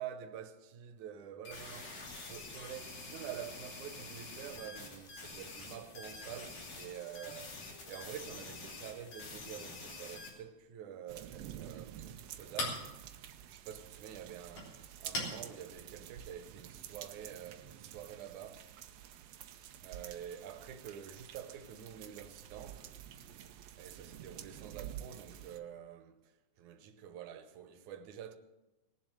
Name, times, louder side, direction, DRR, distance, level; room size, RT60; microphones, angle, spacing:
voice 1, 0.0-12.9 13.5-18.7 19.8-22.9 23.8-26.3 26.6-28.4, right 9 dB, 85° right, 2.4 m, -47 dB
sound 1, 1.5-10.3, left 3 dB, 90° left, 4.3 m, -47 dB
sound 2, 11.1-25.6, right 11 dB, 70° right, 1.7 m, -50 dB
Chink clink, 11.3-16.8, left 1 dB, 60° left, 4.8 m, -44 dB
20.0 x 7.6 x 7.6 m
omnidirectional pair, 3.3 m